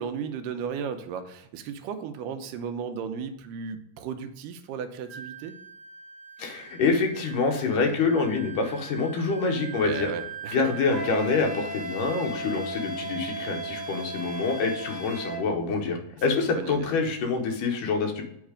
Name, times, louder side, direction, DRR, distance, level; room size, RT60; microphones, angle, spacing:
voice 1, 0.0-5.5 9.8-10.7 16.4-16.9, right 6 dB, 90° right, 8 dB, 2.3 m, -35 dB
Wind instrument woodwind instrument, 5.1-15.4, right 6 dB, 35° right, 1.4 m, -44 dB
voice 2, 6.4-10.1 10.5-18.2, left 4 dB, 80° left, 3 dB, 2.5 m, -26 dB
Wind instrument woodwind instrument 2, 10.9-15.4, right 2 dB, 5° right, 1.1 m, -35 dB
8.4 x 3.2 x 4.9 m, 0.77 s
omnidirectional pair, 3.7 m